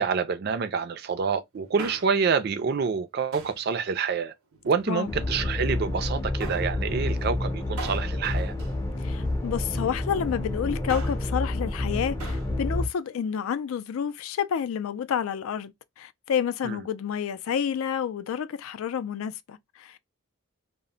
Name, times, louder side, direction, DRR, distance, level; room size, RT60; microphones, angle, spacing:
voice 1, 0.0-4.3 4.7-8.5 16.6-16.8, right 5 dB, 50° right, 0.4 m, -27 dB
Male speech man speaking, 1.6-2.4 3.3-3.7 4.5-5.3 6.4-6.8 7.8-9.4 10.7-11.3 12.2-12.5 12.8-12.9, right 4 dB, 90° right, 0.6 m, -41 dB
sound 1, 5.1-12.9, left 1 dB, 15° left, 0.4 m, -29 dB
voice 2, 9.0-20.0, left 8 dB, 75° left, 0.3 m, -29 dB
2.1 x 2.0 x 3.7 m
head